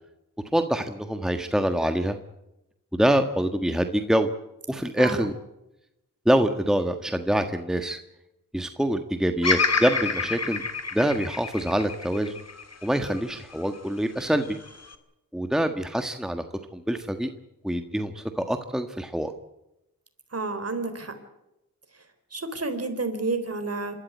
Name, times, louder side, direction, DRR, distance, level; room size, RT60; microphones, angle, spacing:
voice 1, 0.5-2.2 2.9-4.3 4.7-5.3 6.2-8.0 8.5-10.6 10.9-12.4 12.8-14.6 15.3-16.4 16.7-17.3 17.6-19.3, right 1 dB, ahead, 7 dB, 1.5 m, -25 dB
voice 2, 5.0-5.3 20.3-21.2 22.3-24.0, right 3 dB, 45° right, 9 dB, 3.9 m, -30 dB
Bird vocalization bird call bird song, 9.4-13.6 14.2-14.9, left 4 dB, 45° left, 2.3 m, -28 dB
26.0 x 13.0 x 9.3 m, 0.90 s
cardioid pair, 55°, 35 cm